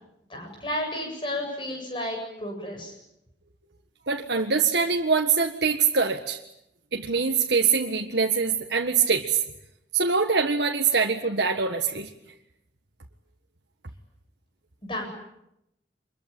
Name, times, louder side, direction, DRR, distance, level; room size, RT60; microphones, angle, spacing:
voice 1, 0.3-2.9 14.8-15.1, left 1 dB, 25° left, 2 dB, 7.7 m, -32 dB
voice 2, 4.1-6.4 6.9-9.4 9.9-12.1, right 5 dB, 65° right, 1 dB, 1.6 m, -23 dB
26.0 x 22.5 x 9.0 m, 0.84 s
head